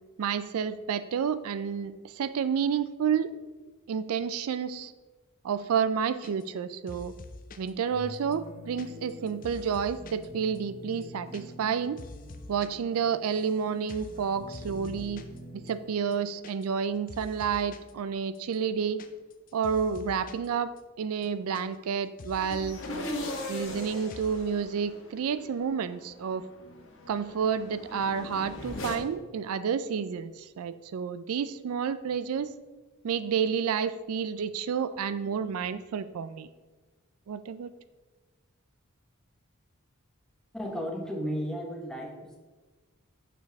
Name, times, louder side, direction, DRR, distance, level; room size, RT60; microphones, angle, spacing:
voice 1, 0.2-3.3 3.9-4.9 5.4-7.1 7.6-12.0 12.5-15.2 15.7-19.0 19.5-20.7 21.0-22.8 23.5-26.5 27.1-32.5 33.0-36.5 37.3-37.7, right 7 dB, 80° right, 14 dB, 0.4 m, -30 dB
sound 1, 6.2-6.6 6.9-7.7 8.1-10.3 10.5-10.6 10.9-11.4 11.7-12.7 12.9-13.6 13.9-14.2 14.5-15.4 15.7-15.8 16.0-16.8 17.1-17.9 18.3-20.5 20.8-20.9 21.1-21.9 22.2-22.9 23.2-23.8 24.1-24.4, left 2 dB, 40° left, 0.5 m, -46 dB
sound 2, 7.9-15.9, equal, 45° right, 1.9 m, -47 dB
sound 3, 22.3-29.0, left 1 dB, 65° left, 1.2 m, -39 dB
voice 2, 40.5-42.4, equal, 5° left, 0 dB, 1.1 m, -34 dB
6.9 x 6.7 x 3.4 m, 1.3 s
head